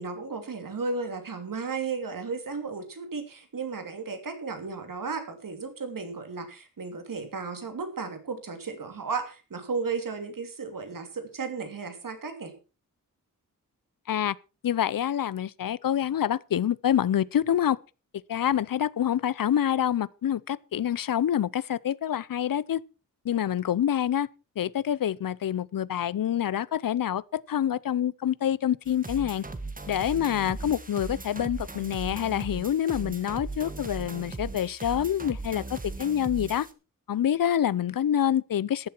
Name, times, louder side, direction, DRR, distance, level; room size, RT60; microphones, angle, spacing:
voice 1, 0.0-12.5, right 4 dB, 70° right, 3.0 m, -34 dB
voice 2, 14.6-17.8 18.3-22.8 23.2-24.3 24.6-29.4 29.9-36.7 37.1-38.9, left 10 dB, 75° left, 0.6 m, -26 dB
sound 1, 28.8-36.7, right 3 dB, 25° right, 1.6 m, -38 dB
14.5 x 11.5 x 4.5 m
wide cardioid pair, 135°, 34 cm